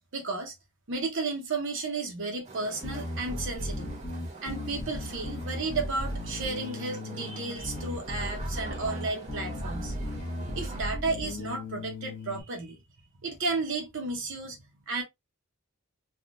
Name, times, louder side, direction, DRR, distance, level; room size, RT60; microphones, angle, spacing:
voice 1, 0.1-0.5 0.9-3.9 4.4-10.2 10.5-12.8 13.2-15.0, right 3 dB, 60° right, 0.8 m, -33 dB
sound 1, 2.4-10.8, right 3 dB, 30° right, 0.9 m, -45 dB
Bass guitar, 2.8-12.4, left 1 dB, 35° left, 0.8 m, -36 dB
3.4 x 2.3 x 2.5 m
head